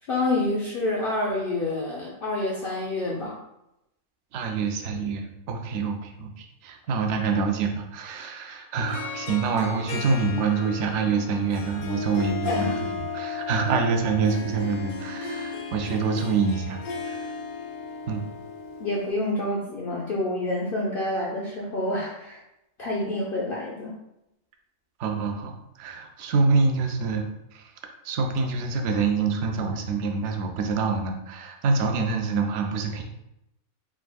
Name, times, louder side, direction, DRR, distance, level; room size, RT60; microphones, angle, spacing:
voice 1, 0.1-3.4 12.4-12.8 13.7-13.8 18.8-22.4 22.8-24.0, left 2 dB, 55° left, -3 dB, 0.6 m, -28 dB
voice 2, 4.3-16.8 17.0-17.3 18.1-18.2 25.0-27.7 28.0-33.0, right 4 dB, 65° right, 3 dB, 0.8 m, -26 dB
Harp, 8.8-19.1, left 4 dB, 80° left, 1.0 m, -35 dB
4.8 x 3.6 x 2.3 m, 0.87 s
omnidirectional pair, 1.5 m